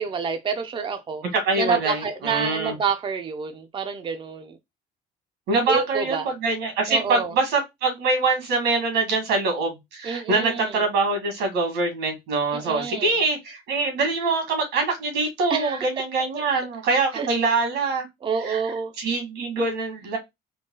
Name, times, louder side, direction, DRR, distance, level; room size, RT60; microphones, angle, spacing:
voice 1, 0.0-1.2 1.5-4.6 5.7-6.3 6.9-7.3 10.0-10.9 12.5-13.2 15.5-15.9 16.5-17.3 18.2-18.9, right 5 dB, 30° right, 0.6 m, -28 dB
voice 2, 1.3-2.7 5.5-18.1 18.4-18.6 19.0-20.2, right 3 dB, 85° right, 2.0 m, -24 dB
3.8 x 2.3 x 3.8 m
cardioid pair, 110°, 17 cm